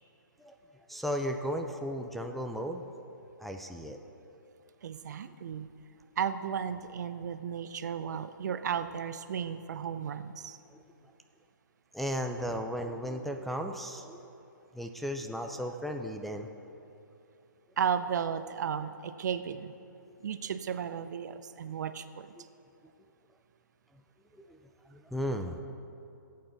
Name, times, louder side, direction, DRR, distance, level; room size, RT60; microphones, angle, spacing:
voice 1, 0.9-2.9 3.4-4.0 10.7-10.8 11.9-14.3 14.7-16.8 22.4-22.5 24.4-24.6 24.9-25.6, equal, ahead, 3 dB, 0.4 m, -35 dB
voice 2, 4.8-5.7 6.2-10.6 17.8-19.7 20.2-22.3, right 7 dB, 55° right, 12 dB, 0.6 m, -34 dB
17.5 x 8.6 x 3.9 m, 2.7 s
hypercardioid pair, 145°, 11 cm